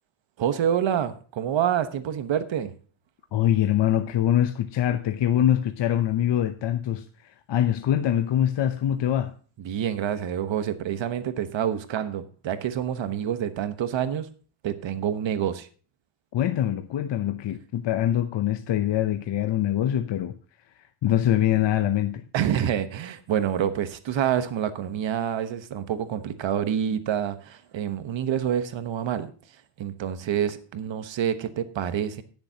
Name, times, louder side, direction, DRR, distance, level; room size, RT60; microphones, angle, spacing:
voice 1, 0.4-2.7 9.6-14.3 14.6-15.7 22.3-29.3 29.8-32.2, right 9 dB, 65° right, 1.1 m, -27 dB
voice 2, 3.3-9.3 16.3-20.3 20.8-22.2, left 11 dB, 60° left, 0.7 m, -24 dB
18.0 x 7.0 x 2.8 m
wide cardioid pair, 145°, 50 cm